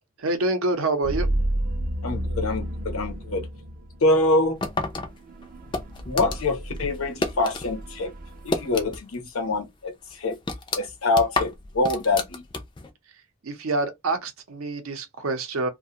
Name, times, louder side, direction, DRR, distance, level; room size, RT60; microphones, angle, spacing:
voice 1, 0.2-1.3 13.4-15.7, right 2 dB, 75° right, 0.7 m, -26 dB
sound 1, 1.0-8.8, right 1 dB, 40° right, 0.4 m, -32 dB
voice 2, 2.0-3.5 4.0-4.6 6.1-8.1 8.4-10.4 10.8-12.4, left 2 dB, 80° left, 0.8 m, -25 dB
sound 2, 4.6-7.7 8.0-9.2 9.5-9.6 10.1-12.9, left 3 dB, 20° left, 0.3 m, -30 dB
2.4 x 2.2 x 2.7 m
head